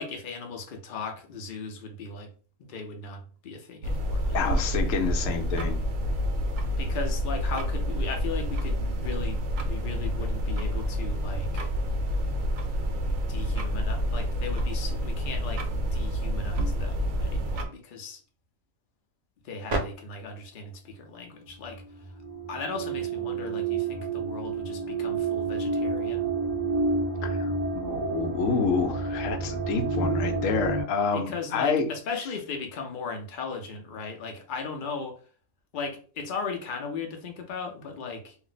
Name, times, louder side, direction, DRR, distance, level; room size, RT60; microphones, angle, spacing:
voice 1, 0.0-2.3 2.6-4.4 6.8-11.7 13.1-18.2 19.4-22.1 22.5-26.3 31.1-35.2 35.7-38.4, left 4 dB, 55° left, 3 dB, 0.6 m, -37 dB
sound 1, 3.8-17.6, equal, 75° right, 0.9 m, -28 dB
voice 2, 4.3-5.8 27.2-31.9, left 5 dB, 70° left, 5 dB, 0.9 m, -28 dB
sound 2, 19.7-19.8 21.7-30.8, right 4 dB, 45° right, 0.5 m, -29 dB
2.6 x 2.0 x 3.8 m, 0.41 s
omnidirectional pair, 1.5 m